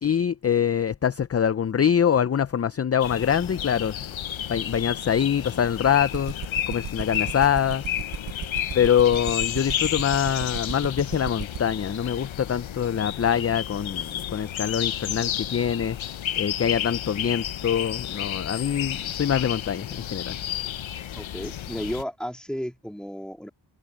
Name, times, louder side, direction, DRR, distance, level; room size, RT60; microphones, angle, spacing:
voice 1, 0.0-3.9 4.5-6.4 6.7-7.8 8.7-16.0 16.4-20.4, left 8 dB, 35° left, 0.5 m, -24 dB
sound 1, 3.0-22.0, left 10 dB, 85° left, 0.8 m, -32 dB
sound 2, 6.1-11.7, right 9 dB, 45° right, 0.5 m, -33 dB
voice 2, 21.1-23.5, equal, ahead, 2.7 m, -33 dB
wide cardioid pair, 100°, 46 cm